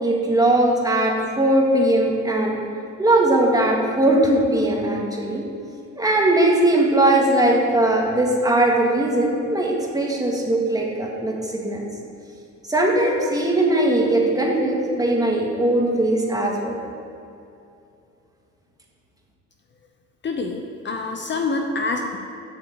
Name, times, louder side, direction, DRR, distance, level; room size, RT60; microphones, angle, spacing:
voice 1, 0.0-2.6 3.0-5.4 6.0-11.9 12.7-16.8, right 1 dB, 10° right, -1 dB, 1.8 m, -19 dB
voice 2, 20.2-22.2, left 3 dB, 35° left, 4 dB, 0.7 m, -26 dB
8.2 x 6.3 x 7.7 m, 2.6 s
cardioid pair, 110°, 32 cm